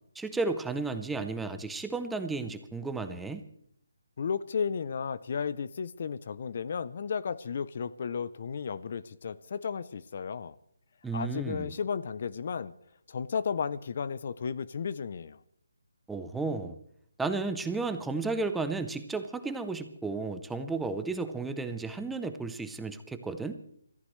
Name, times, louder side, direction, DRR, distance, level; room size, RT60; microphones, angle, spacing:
voice 1, 0.2-3.4 11.0-11.8 16.1-16.8 17.2-23.6, right 3 dB, 5° right, 8 dB, 0.6 m, -33 dB
voice 2, 4.2-10.6 11.1-12.7 13.1-15.4, left 6 dB, 45° left, 17 dB, 0.5 m, -34 dB
26.0 x 14.5 x 3.2 m, 0.69 s
hypercardioid pair, 165°, 0 cm